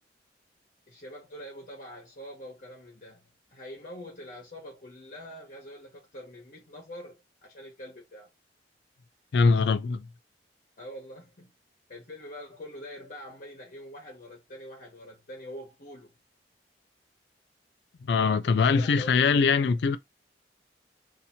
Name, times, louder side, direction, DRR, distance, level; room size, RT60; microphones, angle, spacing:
voice 1, 0.9-8.3 10.8-11.5 11.9-16.2 18.6-19.7, equal, 50° left, 1.0 m, -45 dB
voice 2, 9.3-10.1 18.0-20.0, left 5 dB, 70° left, 0.4 m, -22 dB
2.8 x 2.6 x 4.1 m
head